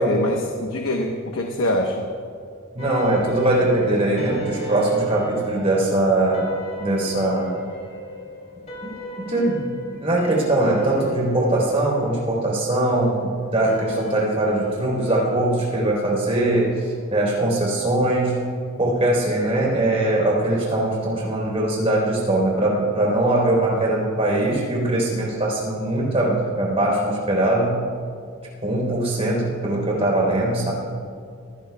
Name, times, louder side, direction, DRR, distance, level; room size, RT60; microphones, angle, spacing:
voice 1, 0.0-2.0, left 1 dB, 80° left, 2 dB, 1.1 m, -24 dB
voice 2, 2.7-6.5 6.8-7.6 9.3-9.7 10.0-18.3 18.8-27.7 28.6-30.7, right 1 dB, 30° right, -2 dB, 3.9 m, -21 dB
sound 1, 2.8-17.3, left 2 dB, 35° left, 3.2 m, -37 dB
23.5 x 16.0 x 2.3 m, 2.4 s
head